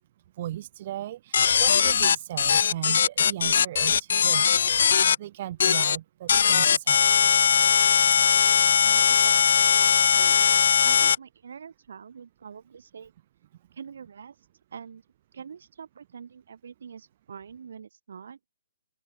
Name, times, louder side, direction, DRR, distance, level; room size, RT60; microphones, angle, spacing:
voice 1, 0.4-4.5 4.8-7.3, right 13 dB, 35° right, 5.4 m, -37 dB
sound 1, 1.3-5.2 5.6-6.0 6.3-11.2, left 7 dB, 60° left, 0.6 m, -20 dB
voice 2, 8.8-10.4 10.8-13.1 13.7-14.4 14.7-15.0 15.3-18.4, right 7 dB, 65° right, 5.9 m, -44 dB
open air
hypercardioid pair, 170°, 0 cm